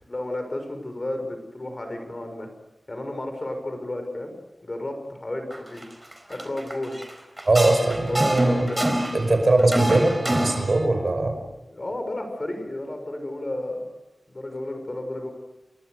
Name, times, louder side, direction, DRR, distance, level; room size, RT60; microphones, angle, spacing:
voice 1, 0.0-2.5 2.9-4.3 4.6-5.9 6.3-7.0 7.9-8.9 11.7-13.9 14.3-15.3, left 1 dB, 35° left, 6 dB, 6.4 m, -32 dB
sound 1, 5.5-5.8 6.1-7.1 7.4-9.3 9.6-10.8, right 1 dB, 15° right, 4.5 m, -26 dB
voice 2, 7.4-8.7 9.1-11.4, right 2 dB, 50° right, 6 dB, 5.4 m, -21 dB
30.0 x 23.0 x 6.7 m, 1.0 s
wide cardioid pair, 95°, 0 cm